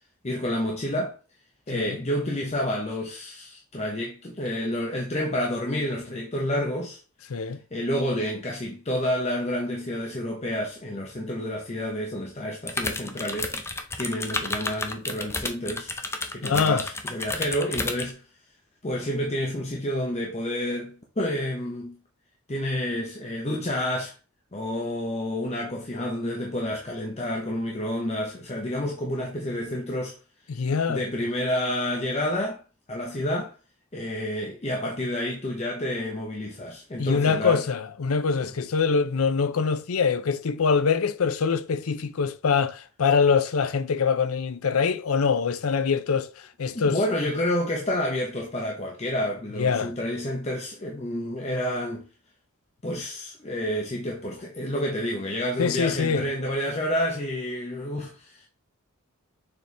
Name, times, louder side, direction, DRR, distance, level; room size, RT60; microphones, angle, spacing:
voice 1, 0.2-1.1 1.7-7.0 7.7-13.5 14.0-15.9 16.3-18.2 18.8-22.0 22.5-24.1 24.5-30.1 30.9-32.6 32.9-33.6 33.9-37.6 38.4-38.5 46.7-52.1 52.8-58.5, left 1 dB, 30° left, 0.9 m, -29 dB
sound 1, 12.7-18.1, left 2 dB, 10° left, 0.6 m, -31 dB
voice 2, 16.4-16.9 30.5-31.1 37.0-46.3 46.6-47.0 49.6-49.9 55.6-56.2, left 5 dB, 85° left, 0.6 m, -24 dB
6.7 x 4.3 x 3.4 m
head